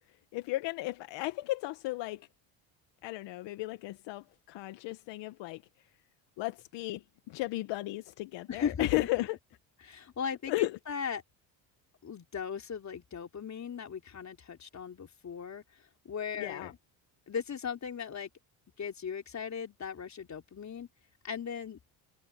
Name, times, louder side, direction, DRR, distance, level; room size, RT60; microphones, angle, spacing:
voice 1, 0.3-2.3 3.0-5.6 6.4-9.4 10.5-10.8 16.4-16.7, left 18 dB, 70° left, 1.4 m, -35 dB
voice 2, 8.5-9.1 9.8-11.2 12.0-15.6 16.1-16.8 17.3-18.3 18.8-20.9 21.2-21.8, left 7 dB, 40° left, 3.7 m, -37 dB
supercardioid pair, 80°, 44 cm